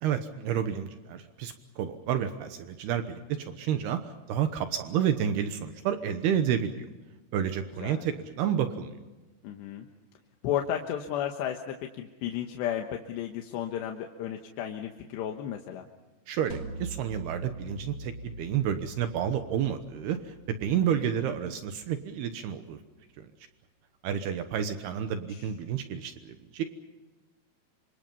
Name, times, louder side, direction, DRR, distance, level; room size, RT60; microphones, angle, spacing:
voice 1, 0.0-6.9 7.3-8.9 16.3-22.8 24.0-26.6, right 9 dB, 75° right, 8 dB, 3.0 m, -30 dB
voice 2, 7.8-8.2 9.4-9.9 10.4-15.9 20.7-21.2 25.1-25.5, left 10 dB, 85° left, 3 dB, 3.5 m, -34 dB
sound 1, 16.5-21.6, right 2 dB, 45° right, 2.2 m, -43 dB
27.0 x 26.0 x 5.5 m, 1.1 s
omnidirectional pair, 4.8 m